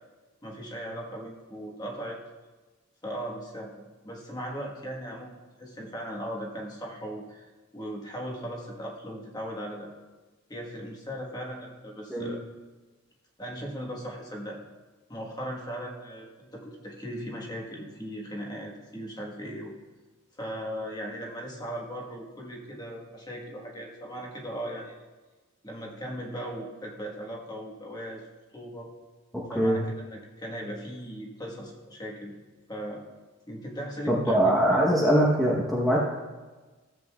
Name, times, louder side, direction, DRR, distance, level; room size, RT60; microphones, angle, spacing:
voice 1, 0.4-2.2 3.0-5.3 5.6-9.9 10.5-12.4 13.4-14.6 15.1-19.7 20.4-25.0 25.6-28.3 28.5-28.9 29.5-32.3 32.7-33.0 33.5-34.5, equal, 20° left, -1 dB, 1.4 m, -38 dB
voice 2, 34.1-36.0, equal, ahead, -6 dB, 0.9 m, -22 dB
14.5 x 7.7 x 2.3 m, 1.3 s
head